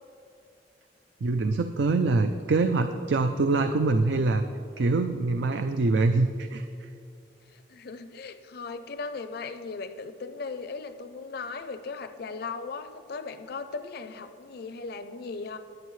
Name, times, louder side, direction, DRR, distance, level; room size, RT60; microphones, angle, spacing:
voice 1, 1.2-4.4 4.8-6.9, right 3 dB, 80° right, 7 dB, 0.5 m, -24 dB
voice 2, 7.5-15.6, left 4 dB, 60° left, 9 dB, 0.5 m, -37 dB
20.5 x 8.3 x 3.2 m, 2.4 s
head